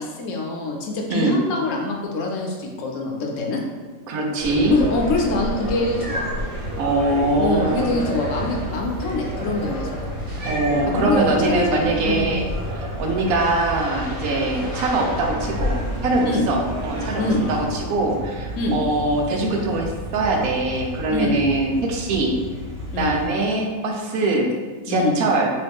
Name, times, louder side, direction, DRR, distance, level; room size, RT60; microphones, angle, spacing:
voice 1, 0.0-3.6 4.7-6.4 7.4-10.0 10.9-12.5 16.2-16.5 17.2-17.5 18.6-18.8 21.1-21.4 22.9-23.2 24.9-25.2, left 2 dB, 70° left, 0 dB, 0.9 m, -25 dB
voice 2, 4.1-4.8 6.8-7.9 10.4-15.8 16.0-22.4 23.0-24.5 24.9-25.5, right 2 dB, 90° right, 1 dB, 1.1 m, -22 dB
sound 1, 4.4-23.3, equal, 40° right, 0.5 m, -33 dB
sound 2, 4.4-17.7, equal, 55° right, 1.3 m, -31 dB
3.0 x 2.6 x 3.4 m, 1.4 s
omnidirectional pair, 1.5 m